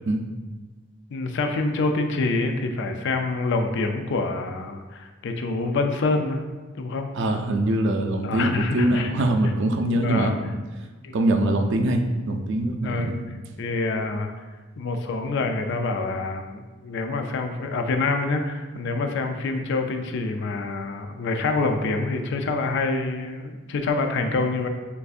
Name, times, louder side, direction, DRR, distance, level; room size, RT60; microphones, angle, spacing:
voice 1, 1.1-6.4 6.7-7.1 8.2-9.1 10.0-10.3 11.0-11.2 12.8-13.2 13.6-14.3 14.8-24.7, left 3 dB, 65° left, 5 dB, 0.4 m, -26 dB
voice 2, 7.2-10.3 11.1-13.2, right 1 dB, 65° right, 4 dB, 0.5 m, -23 dB
6.8 x 2.6 x 2.4 m, 1.3 s
head